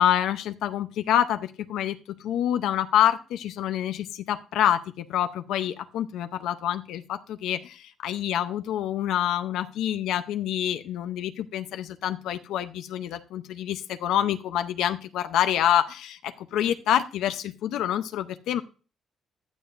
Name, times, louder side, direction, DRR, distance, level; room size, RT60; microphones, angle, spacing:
voice 1, 0.0-18.6, left 11 dB, 85° left, 9 dB, 0.6 m, -27 dB
15.0 x 10.0 x 2.5 m, 0.35 s
cardioid pair, 90°, 0 cm